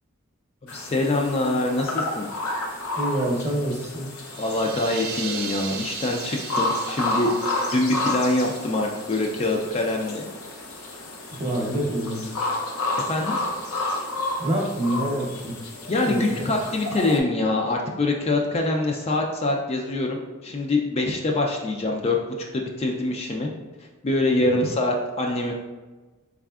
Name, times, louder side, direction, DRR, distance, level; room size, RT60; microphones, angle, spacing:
voice 1, 0.6-2.3 4.4-7.3 7.6-10.3 13.0-13.4 15.9-22.2 22.5-23.5 24.0-25.6, left 2 dB, 30° left, 1 dB, 0.3 m, -24 dB
sound 1, 0.7-17.2, left 2 dB, 85° left, 0.6 m, -31 dB
voice 2, 3.0-4.1 11.4-12.2 14.4-15.5 16.1-16.2 24.4-24.6, right 1 dB, 30° right, -2 dB, 0.7 m, -26 dB
sound 2, 4.2-9.8, right 5 dB, 80° right, 0.5 m, -37 dB
4.1 x 3.5 x 2.3 m, 1.2 s
head